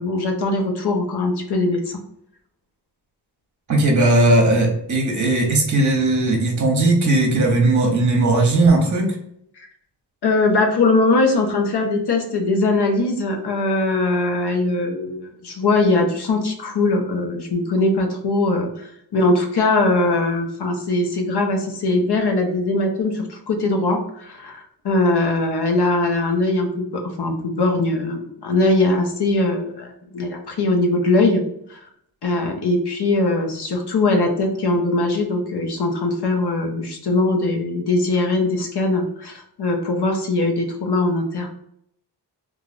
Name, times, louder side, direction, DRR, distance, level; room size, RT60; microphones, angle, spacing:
voice 1, 0.0-2.0 10.2-31.4 31.7-31.9 32.2-41.5, left 2 dB, 65° left, 2 dB, 0.8 m, -21 dB
voice 2, 3.7-9.2, right 2 dB, 45° right, 2 dB, 0.9 m, -17 dB
3.2 x 2.5 x 2.5 m, 0.71 s
cardioid pair, 80°, 42 cm